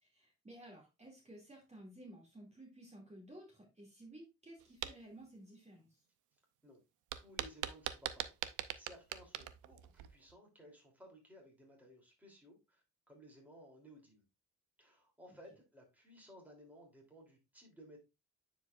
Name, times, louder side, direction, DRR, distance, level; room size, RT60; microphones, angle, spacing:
voice 1, 0.0-6.0, right 1 dB, 20° right, -1 dB, 2.4 m, -55 dB
sound 1, 4.6-4.9 7.1-10.3, right 12 dB, 80° right, 0.6 m, -41 dB
voice 2, 7.1-8.3 8.7-14.2 14.8-18.0, equal, 5° right, -1 dB, 3.1 m, -58 dB
9.4 x 4.7 x 2.5 m, 0.25 s
cardioid pair, 90°, 30 cm